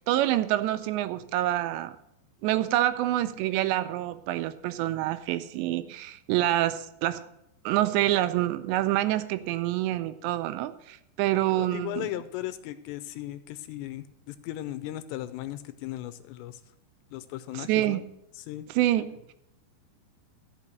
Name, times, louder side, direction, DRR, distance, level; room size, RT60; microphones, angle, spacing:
voice 1, 0.0-2.0 2.4-7.3 7.7-12.1 17.5-18.0 18.7-19.3, right 14 dB, 85° right, 2.7 m, -27 dB
voice 2, 11.6-16.6 17.1-18.0 18.4-18.6, left 14 dB, 80° left, 2.7 m, -37 dB
13.5 x 5.8 x 7.8 m
omnidirectional pair, 5.2 m